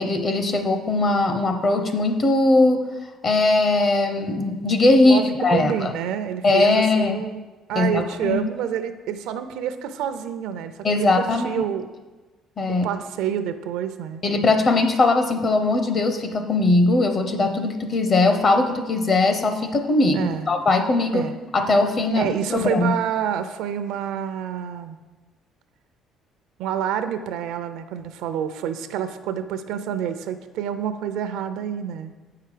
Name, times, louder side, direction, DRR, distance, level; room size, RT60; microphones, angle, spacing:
voice 1, 0.0-2.8 3.2-5.9 6.4-7.2 7.7-8.4 10.8-11.5 12.6-12.9 14.2-22.9, left 2 dB, 40° left, 7 dB, 0.9 m, -20 dB
voice 2, 5.0-7.4 7.7-11.9 12.7-14.2 20.1-20.5 21.1-21.4 22.2-25.0 26.6-32.1, right 9 dB, 85° right, 10 dB, 0.5 m, -28 dB
8.2 x 5.7 x 5.0 m, 1.2 s
cardioid pair, 115°, 0 cm